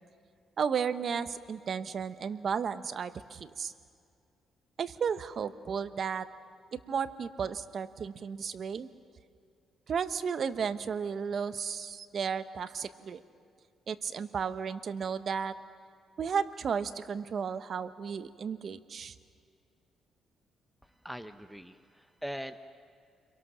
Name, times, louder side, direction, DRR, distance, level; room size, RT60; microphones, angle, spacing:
voice 1, 0.6-3.7 4.8-6.3 6.7-8.9 9.9-13.2 13.9-15.6 16.2-19.1, right 6 dB, 55° right, 12 dB, 1.1 m, -33 dB
voice 2, 20.8-22.6, equal, ahead, 10 dB, 1.0 m, -42 dB
29.5 x 23.0 x 6.3 m, 2.3 s
cardioid pair, 90°, 0 cm